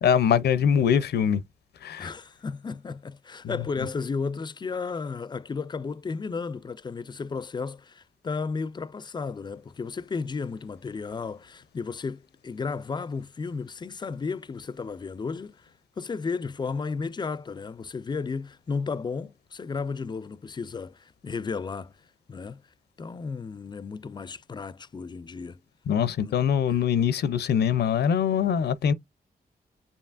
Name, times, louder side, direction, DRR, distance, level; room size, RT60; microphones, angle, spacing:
voice 1, 0.0-1.4 1.8-2.1 3.4-3.6 25.9-28.9, left 8 dB, 85° left, 0.6 m, -23 dB
voice 2, 2.0-15.7 16.0-22.0 22.3-22.6 23.0-25.6 26.2-26.3 26.7-26.8, left 4 dB, 25° left, 0.3 m, -33 dB
7.0 x 2.7 x 2.4 m
wide cardioid pair, 105°, 17 cm